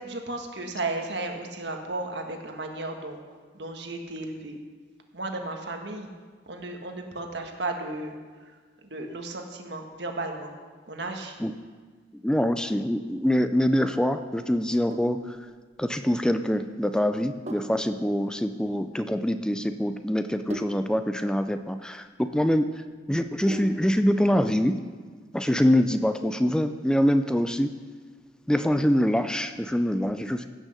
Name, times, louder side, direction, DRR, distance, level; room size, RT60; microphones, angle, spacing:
voice 1, 0.0-3.2 3.6-4.6 5.1-6.1 6.5-8.1 8.8-10.5 10.9-11.3 25.4-25.6, right 2 dB, 75° right, 4 dB, 1.5 m, -34 dB
voice 2, 12.2-15.4 15.8-22.7 23.1-24.8 25.3-27.7 28.5-30.5, equal, 5° left, 9 dB, 0.4 m, -24 dB
Sink (filling or washing), 14.8-24.0, right 2 dB, 40° right, 1.1 m, -43 dB
16.0 x 6.3 x 6.5 m, 1.5 s
head